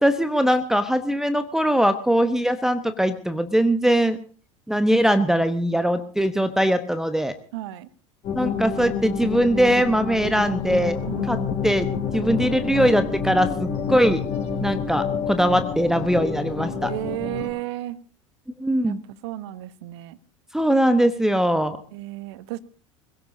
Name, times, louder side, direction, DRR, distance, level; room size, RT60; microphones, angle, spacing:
voice 1, 0.0-4.2 4.7-7.3 8.3-11.0 11.3-11.9 12.1-14.2 14.6-16.9 18.6-19.0 20.5-21.8, equal, 5° right, 11 dB, 1.0 m, -21 dB
voice 2, 7.5-7.9 11.1-11.5 12.1-12.4 16.9-18.0 18.8-19.0 19.2-20.2 21.9-22.6, right 15 dB, 55° right, 17 dB, 1.0 m, -33 dB
sound 1, 8.2-17.5, left 6 dB, 40° left, 4.0 m, -28 dB
26.5 x 17.0 x 2.7 m, 0.43 s
figure-of-eight pair, 75°, 17 cm